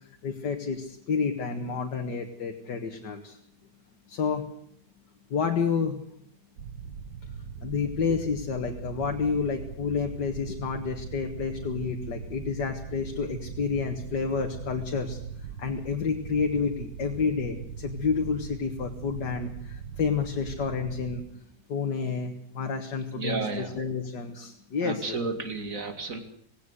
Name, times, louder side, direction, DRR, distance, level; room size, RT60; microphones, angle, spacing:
voice 1, 0.2-3.4 4.1-4.4 5.3-6.0 7.6-15.2 15.6-21.2 21.7-23.4 23.8-25.2, left 5 dB, 75° left, 3 dB, 2.2 m, -29 dB
sound 1, 6.6-21.2, right 6 dB, 75° right, 2.1 m, -40 dB
voice 2, 23.2-23.8 24.8-26.2, right 3 dB, 50° right, 7 dB, 2.7 m, -32 dB
18.5 x 17.5 x 8.2 m, 0.67 s
omnidirectional pair, 1.8 m